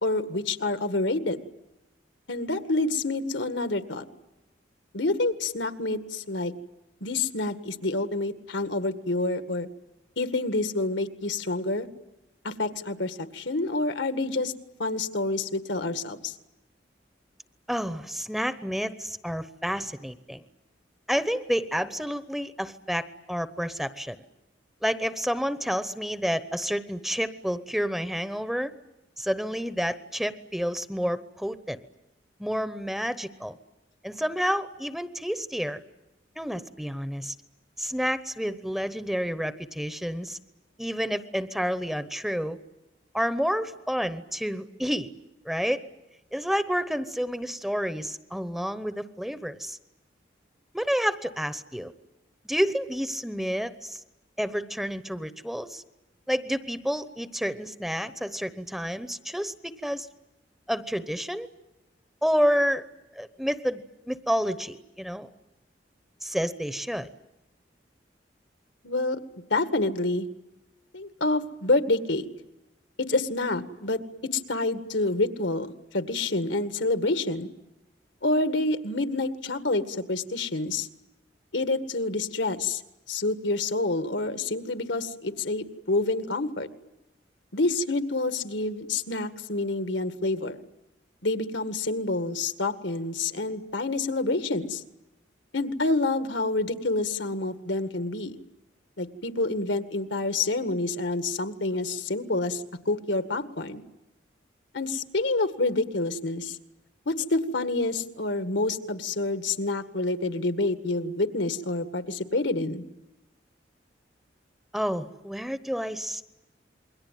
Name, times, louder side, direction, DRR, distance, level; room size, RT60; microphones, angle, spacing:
voice 1, 0.0-1.4 2.3-4.0 4.9-6.5 7.0-9.7 10.2-11.9 12.4-14.5 14.8-16.3 68.8-69.2 69.5-70.3 70.9-72.2 73.0-75.7 75.9-77.5 78.2-80.9 81.5-82.8 83.1-86.7 87.5-90.6 91.2-94.8 95.5-98.4 99.0-103.8 104.7-106.6 107.1-112.8, left 2 dB, 80° left, 10 dB, 1.9 m, -28 dB
voice 2, 17.7-20.4 21.1-24.2 24.8-28.7 29.2-31.8 32.4-33.6 34.0-35.8 36.4-37.3 37.8-40.4 40.8-42.6 43.1-45.1 45.4-45.8 46.3-49.8 50.7-51.9 52.4-54.0 54.4-55.8 56.3-60.1 60.7-61.5 62.2-62.8 63.1-65.3 66.2-67.1 114.7-116.3, equal, ahead, 12 dB, 0.9 m, -29 dB
28.0 x 22.5 x 9.3 m, 0.96 s
head